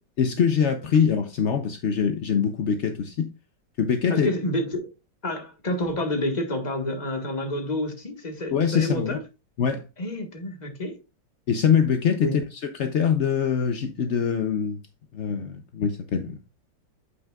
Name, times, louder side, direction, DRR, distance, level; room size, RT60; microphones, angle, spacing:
voice 1, 0.2-3.3 3.8-4.3 8.5-9.2 9.6-9.8 11.5-14.8 15.1-16.4, left 7 dB, 60° left, 0.7 m, -23 dB
voice 2, 4.1-4.9 5.2-9.2 10.0-10.9 12.2-12.4, left 1 dB, 25° left, 1.4 m, -29 dB
8.4 x 8.1 x 2.3 m
omnidirectional pair, 2.0 m